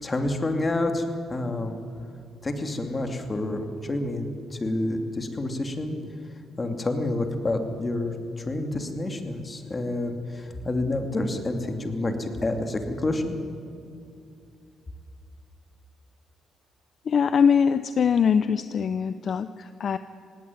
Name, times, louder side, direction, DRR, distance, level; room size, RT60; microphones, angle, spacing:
voice 1, 0.0-1.7 2.4-6.0 6.6-13.3, left 2 dB, 25° left, 5 dB, 2.6 m, -28 dB
voice 2, 17.1-20.0, left 7 dB, 55° left, 12 dB, 0.6 m, -22 dB
18.5 x 17.0 x 9.5 m, 2.5 s
cardioid pair, 90°, 0 cm